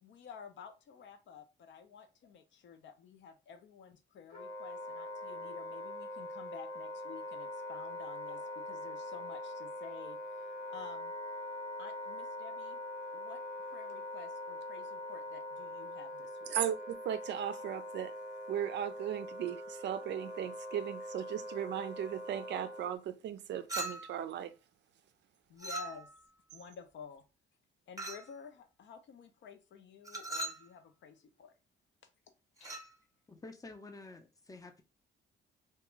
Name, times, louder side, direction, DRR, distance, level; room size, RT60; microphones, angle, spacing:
voice 1, 0.0-10.2 10.7-11.1 11.8-12.8 13.1-16.6 25.5-26.1 26.5-27.2 27.9-31.5 32.6-32.7, left 6 dB, 65° left, 0.6 m, -52 dB
Wind instrument woodwind instrument, 4.3-22.9, left 1 dB, 85° left, 1.0 m, -43 dB
voice 2, 16.5-18.1 18.5-24.5, right 10 dB, 65° right, 0.4 m, -37 dB
Chink clink, 23.7-24.3 25.6-26.3 28.0-28.3 30.0-30.7 32.6-32.9, right 2 dB, 15° right, 0.9 m, -40 dB
voice 3, 33.3-34.8, left 3 dB, 15° left, 0.5 m, -50 dB
2.4 x 2.2 x 3.0 m
cardioid pair, 90°, 20 cm